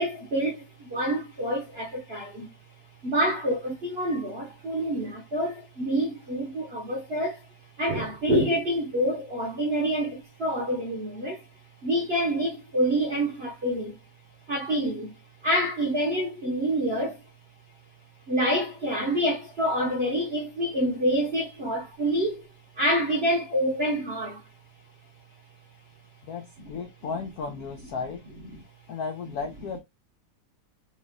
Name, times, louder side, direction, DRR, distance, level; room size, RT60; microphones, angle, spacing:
voice 1, 0.0-2.5 3.0-7.5 7.8-11.4 11.8-14.0 14.5-15.2 15.4-17.2 18.3-22.5 22.8-24.4 28.5-28.6, equal, 55° right, 0.7 m, -27 dB
voice 2, 26.3-28.2 28.9-29.8, left 5 dB, 85° left, 0.8 m, -34 dB
3.3 x 2.4 x 3.4 m
omnidirectional pair, 2.2 m